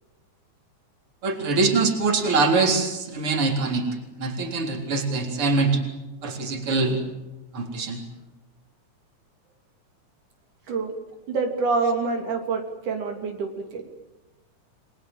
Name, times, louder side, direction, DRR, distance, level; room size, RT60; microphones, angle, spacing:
voice 1, 1.2-3.9 4.2-5.8 6.2-7.0 7.5-8.0 11.8-11.9, right 3 dB, 45° right, 3 dB, 4.6 m, -23 dB
voice 2, 11.3-13.8, right 4 dB, 85° right, 3 dB, 4.5 m, -27 dB
30.0 x 22.0 x 7.5 m, 1.1 s
omnidirectional pair, 3.5 m